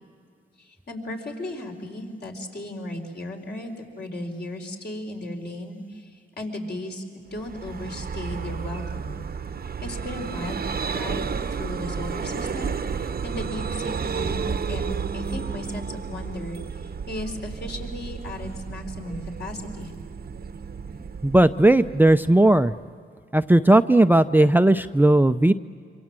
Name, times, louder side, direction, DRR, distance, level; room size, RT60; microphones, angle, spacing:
voice 1, 0.6-9.2 9.6-19.9, left 1 dB, 55° left, 2 dB, 4.5 m, -36 dB
Vehicle, 7.3-22.8, right 6 dB, 50° right, 0.9 m, -32 dB
voice 2, 21.2-22.7 23.3-25.5, right 1 dB, 10° right, 11 dB, 0.6 m, -17 dB
26.5 x 26.0 x 7.6 m, 2.2 s
cardioid pair, 85°, 21 cm